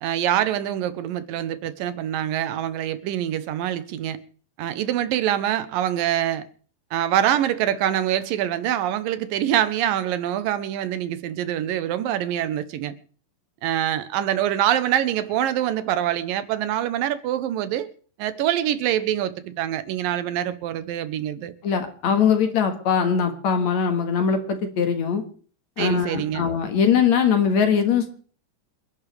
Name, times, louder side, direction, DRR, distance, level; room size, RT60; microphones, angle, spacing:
voice 1, 0.0-4.2 4.6-6.5 6.9-12.9 13.6-17.9 18.2-21.5 25.8-26.4, right 11 dB, 85° right, 2.6 m, -25 dB
voice 2, 21.6-25.2 25.8-28.2, left 7 dB, 60° left, 2.6 m, -21 dB
28.0 x 11.0 x 3.4 m
omnidirectional pair, 4.0 m